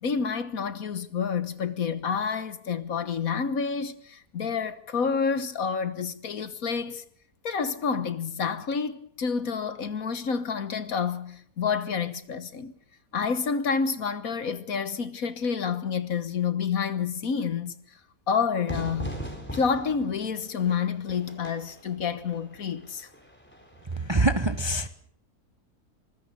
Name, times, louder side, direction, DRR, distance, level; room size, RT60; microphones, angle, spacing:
voice 1, 0.0-7.0 7.4-12.7 13.1-17.7 18.3-19.1 19.5-23.1, left 6 dB, 60° left, 1.7 m, -29 dB
Fire / Fireworks, 18.7-24.2, equal, 5° left, 4.7 m, -40 dB
voice 2, 24.0-24.9, right 2 dB, 20° right, 0.9 m, -24 dB
24.0 x 21.0 x 6.8 m
omnidirectional pair, 1.7 m